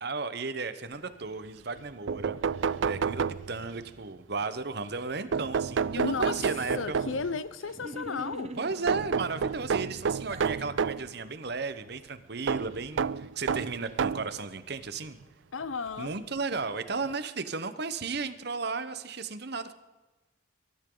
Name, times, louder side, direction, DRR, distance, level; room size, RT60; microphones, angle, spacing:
voice 1, 0.0-7.0 8.6-15.2 16.0-19.7, right 4 dB, 55° right, 1.0 m, -35 dB
sound 1, 1.8-1.9 2.1-3.8 5.3-7.4 8.9-11.1 12.5-14.3 15.2-15.3 16.6-16.7 17.1-17.2, right 6 dB, 70° right, 0.4 m, -30 dB
voice 2, 6.0-6.5 6.7-8.6 15.5-16.2, left 4 dB, 85° left, 0.7 m, -34 dB
sound 2, 7.7-9.1 9.7-10.6, right 1 dB, 35° right, 0.8 m, -41 dB
23.0 x 13.5 x 3.9 m
head